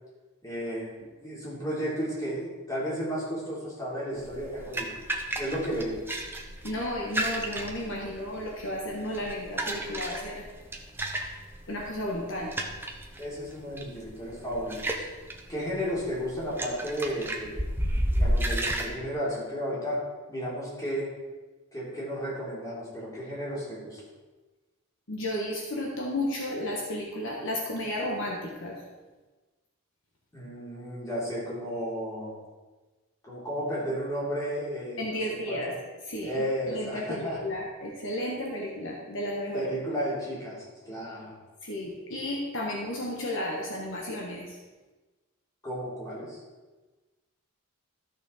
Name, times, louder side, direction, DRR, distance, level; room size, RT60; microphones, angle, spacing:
voice 1, 0.4-0.9 1.2-4.9 5.4-6.0 13.2-15.1 15.5-17.6 18.1-21.1 21.7-24.0 30.3-32.3 33.2-35.2 35.5-35.7 36.2-37.4 39.5-41.3 45.6-46.4, equal, 15° left, -7 dB, 3.5 m, -33 dB
sound 1, 4.2-18.9, right 1 dB, 10° right, 0.8 m, -33 dB
voice 2, 6.6-10.5 11.7-12.6 25.1-28.8 35.0-35.7 36.0-39.7 41.6-44.6, left 1 dB, 60° left, -1 dB, 1.3 m, -33 dB
13.0 x 6.5 x 4.2 m, 1.2 s
head